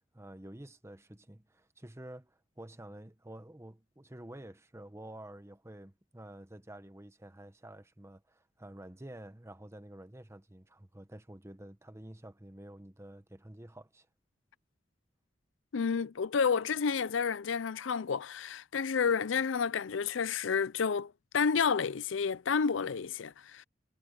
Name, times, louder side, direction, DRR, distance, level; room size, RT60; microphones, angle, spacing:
voice 1, 0.1-14.1, right 1 dB, 15° right, 1.1 m, -49 dB
voice 2, 15.7-23.6, left 6 dB, 75° left, 0.5 m, -30 dB
head